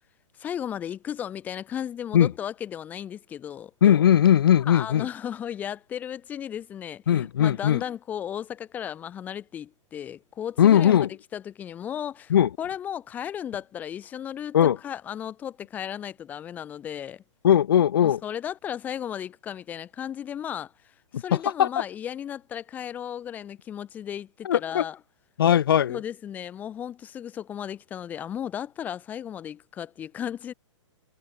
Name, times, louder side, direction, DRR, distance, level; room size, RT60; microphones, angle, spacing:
voice 1, 0.4-3.7 4.6-17.2 18.0-20.7 21.2-25.0 25.9-30.5, left 9 dB, 10° left, 3.0 m, -35 dB
voice 2, 3.8-5.1 7.1-7.8 10.6-11.1 12.3-12.5 14.5-14.8 17.4-18.2 21.1-21.2 21.6-21.7 24.5-24.8 25.4-26.0, left 10 dB, 45° left, 1.6 m, -19 dB
hypercardioid pair, 175°, 16 cm